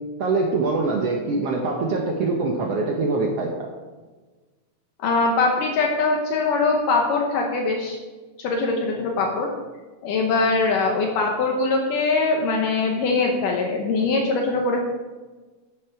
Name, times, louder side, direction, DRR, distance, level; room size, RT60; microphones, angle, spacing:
voice 1, 0.2-3.7, right 3 dB, 75° right, 0 dB, 1.4 m, -24 dB
voice 2, 5.0-8.0 8.4-9.5 10.0-14.8, left 3 dB, 75° left, 1 dB, 2.5 m, -22 dB
12.0 x 7.1 x 4.7 m, 1.3 s
omnidirectional pair, 4.1 m